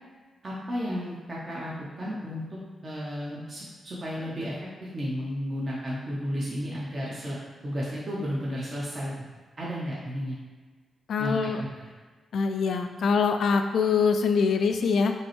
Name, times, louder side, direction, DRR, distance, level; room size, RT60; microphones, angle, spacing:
voice 1, 0.4-2.4 2.8-4.5 4.9-9.1 9.6-10.4 11.2-11.9, equal, 35° right, -7 dB, 0.8 m, -33 dB
voice 2, 11.1-11.6 12.3-15.1, left 5 dB, 75° left, 6 dB, 0.3 m, -24 dB
5.2 x 2.1 x 3.0 m, 1.4 s
cardioid pair, 80°, 0 cm